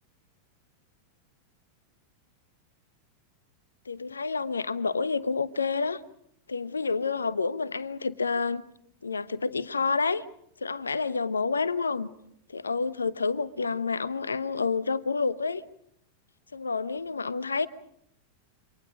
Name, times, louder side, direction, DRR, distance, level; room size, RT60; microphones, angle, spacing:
voice 1, 3.9-6.0 6.5-8.6 9.0-10.2 10.6-12.1 12.5-15.6 16.5-17.7, left 4 dB, 75° left, 0.9 m, -29 dB
28.0 x 25.0 x 5.1 m
figure-of-eight pair, 90°, 0 cm